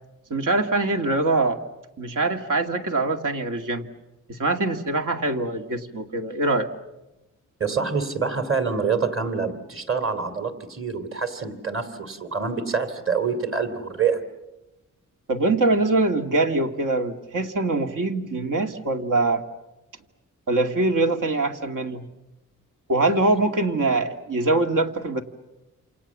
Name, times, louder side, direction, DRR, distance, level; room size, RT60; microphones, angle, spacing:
voice 1, 0.3-1.6 2.0-3.9 4.3-6.7 15.3-19.4 20.5-22.1 22.9-25.2, right 2 dB, 75° right, 6 dB, 2.2 m, -23 dB
voice 2, 7.6-14.2, right 5 dB, 40° right, 8 dB, 3.1 m, -26 dB
28.0 x 27.5 x 7.4 m, 1.0 s
wide cardioid pair, 115°, 32 cm